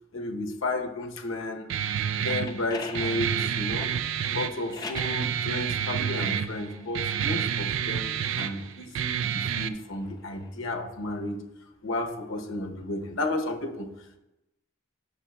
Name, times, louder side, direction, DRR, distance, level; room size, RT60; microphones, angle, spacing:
voice 1, 0.1-1.7 2.2-3.9 4.3-11.4 11.8-13.9, left 2 dB, 85° left, 3 dB, 0.9 m, -32 dB
Guitar, 1.7-9.7, right 8 dB, 75° right, 0.3 m, -29 dB
sound 1, 2.0-5.2 6.0-7.7 8.2-10.5, left 3 dB, 20° left, 0.5 m, -44 dB
9.8 x 6.1 x 2.3 m, 0.94 s
head